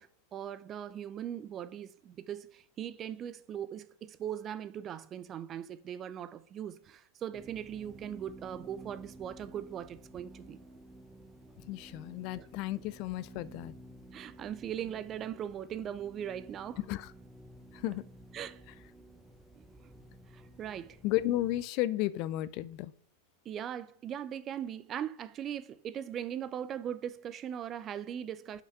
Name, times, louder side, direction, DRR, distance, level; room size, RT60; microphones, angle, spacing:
voice 1, 0.0-10.6 12.3-12.5 14.1-16.8 18.3-18.6 19.6-19.9 20.3-21.0 23.5-28.6, right 9 dB, 35° right, 0.4 m, -40 dB
sound 1, 7.3-21.6, right 2 dB, 10° right, 0.8 m, -53 dB
voice 2, 11.6-13.7 16.9-17.0 17.7-18.0 21.0-22.9, left 15 dB, 50° left, 0.3 m, -33 dB
6.0 x 5.5 x 5.5 m
hypercardioid pair, 100°, 0 cm